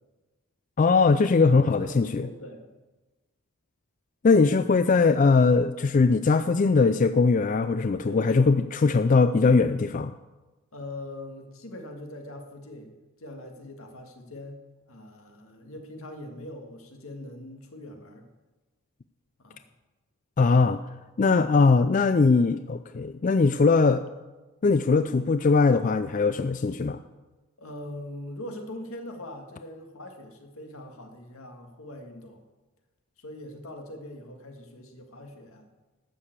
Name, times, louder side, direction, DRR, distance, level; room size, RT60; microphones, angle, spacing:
voice 1, 0.8-2.3 4.2-10.1 20.4-20.8 21.2-24.0 24.6-27.0, left 4 dB, 35° left, 11 dB, 0.3 m, -21 dB
voice 2, 1.6-2.7 4.4-4.7 7.9-8.6 10.7-14.6 14.9-18.3 19.4-19.6 24.9-25.2 27.6-32.4 33.2-35.7, left 1 dB, 80° left, 3 dB, 2.0 m, -42 dB
13.0 x 6.7 x 8.1 m, 1.2 s
head